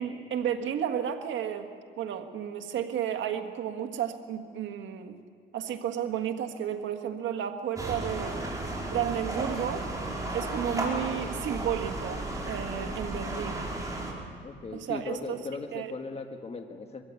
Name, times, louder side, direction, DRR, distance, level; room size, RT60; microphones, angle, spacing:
voice 1, 0.0-1.7 2.0-5.2 5.5-8.4 8.9-9.9 10.3-13.7 14.7-15.5 15.7-15.9, right 9 dB, 75° right, 7 dB, 1.7 m, -32 dB
sound 1, 7.8-14.1, right 2 dB, 15° right, 4.7 m, -34 dB
voice 2, 14.4-17.0, left 4 dB, 30° left, 5 dB, 1.7 m, -38 dB
22.5 x 15.0 x 8.3 m, 2.2 s
cardioid pair, 90°, 20 cm